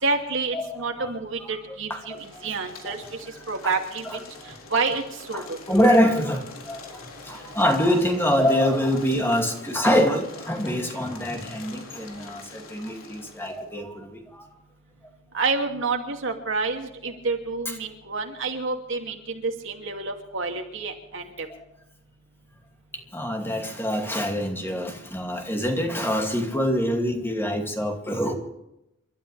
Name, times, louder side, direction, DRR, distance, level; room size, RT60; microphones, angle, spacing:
voice 1, 0.0-3.0 3.5-4.2 4.7-5.0 5.3-5.6 15.3-21.5, right 4 dB, 65° right, 3 dB, 2.6 m, -28 dB
voice 2, 1.9-2.2 2.8-2.9 3.6-3.7 5.3-6.8 7.3-14.2 23.1-28.3, equal, 10° left, 2 dB, 2.5 m, -24 dB
sound 1, 2.1-13.6, left 3 dB, 80° left, 3.9 m, -44 dB
29.5 x 13.0 x 3.4 m, 0.87 s
head